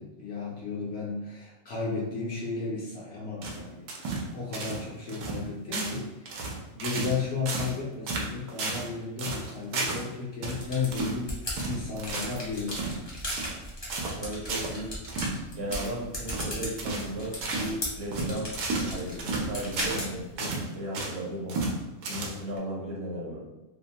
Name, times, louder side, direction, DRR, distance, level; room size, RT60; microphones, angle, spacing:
voice 1, 0.0-3.9 4.3-6.4 6.8-12.9, left 4 dB, 60° left, -5 dB, 0.7 m, -34 dB
sound 1, 3.4-4.3 4.5-4.8 5.1-5.4 5.7-6.0 6.3-7.2 7.5-7.8 8.1-8.9 9.2-10.1 10.4-10.6 10.9-11.2 11.6-12.4 12.7-13.0 13.3-13.6 13.9-14.2 14.5-14.8 15.1-15.4 15.7-15.9 16.3-16.5 16.8-17.1 17.4-17.7 18.1-20.1 20.4-21.2 21.5-21.8 22.0-22.6, right 3 dB, 85° right, 1.1 m, -32 dB
sound 2, 10.6-20.4, equal, 25° left, 0.5 m, -38 dB
voice 2, 14.1-14.9 15.5-18.5 18.8-21.6 22.1-23.5, right 1 dB, 65° right, -4 dB, 1.2 m, -35 dB
2.7 x 2.1 x 2.8 m, 1.0 s
omnidirectional pair, 1.4 m